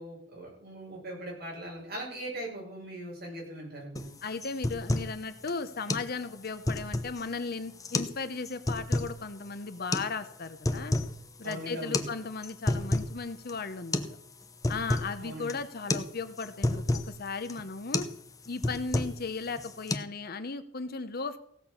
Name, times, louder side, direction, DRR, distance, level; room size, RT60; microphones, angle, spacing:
voice 1, 0.0-4.1 11.4-12.1 15.2-15.5, right 1 dB, 50° right, -2 dB, 5.9 m, -40 dB
sound 1, 4.0-4.1 4.4-5.2 5.5-5.6 5.9-6.1 6.5-7.2 7.8-8.2 8.5-9.1 9.9-10.1 10.5-11.2 11.4-11.6 11.9-12.1 12.4-13.2 13.5-13.6 13.9-14.2 14.4-15.1 15.5-15.7 15.9-16.1 16.4-17.1 17.5-17.7 17.9-18.2 18.4-19.3 19.6-20.0, left 2 dB, 20° left, 0.8 m, -30 dB
voice 2, 4.2-11.0 11.4-14.2 14.7-18.1 18.5-21.4, left 4 dB, 50° left, 11 dB, 0.9 m, -36 dB
16.5 x 6.3 x 7.0 m, 0.68 s
head